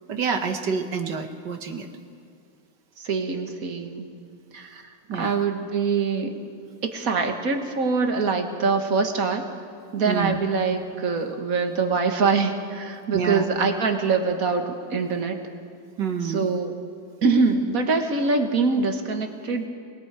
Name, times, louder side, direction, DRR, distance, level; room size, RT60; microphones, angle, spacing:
voice 1, 0.1-1.9 5.1-5.3 10.1-10.4 13.1-13.5 16.0-16.5, right 6 dB, 70° right, 5 dB, 2.0 m, -27 dB
voice 2, 3.0-4.1 4.5-6.3 6.9-9.4 9.9-15.4 16.2-16.7 17.2-19.7, right 4 dB, 50° right, 5 dB, 1.8 m, -24 dB
26.5 x 20.5 x 4.8 m, 2.3 s
omnidirectional pair, 1.9 m